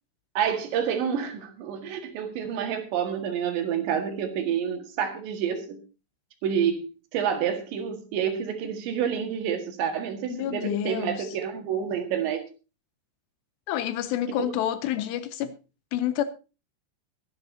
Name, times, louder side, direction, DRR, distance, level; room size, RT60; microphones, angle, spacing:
voice 1, 0.4-5.8 6.4-6.8 7.1-12.4 14.4-14.5, right 8 dB, 75° right, 3.9 m, -28 dB
voice 2, 10.3-11.3 13.7-15.5 15.9-16.2, left 11 dB, 80° left, 2.7 m, -28 dB
22.5 x 10.5 x 2.8 m
omnidirectional pair, 5.3 m